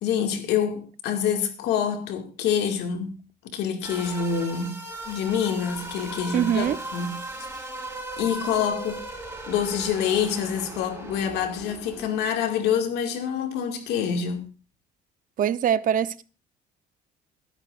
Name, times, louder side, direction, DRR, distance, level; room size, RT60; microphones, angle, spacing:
voice 1, 0.0-3.2 3.4-4.8 5.1-7.2 8.2-9.0 9.5-14.5, left 7 dB, 80° left, 2.4 m, -26 dB
sound 1, 3.8-12.6, right 2 dB, 15° right, 5.7 m, -38 dB
voice 2, 6.3-6.8 15.4-16.2, right 9 dB, 55° right, 0.8 m, -23 dB
21.5 x 10.5 x 2.6 m
cardioid pair, 110°, 17 cm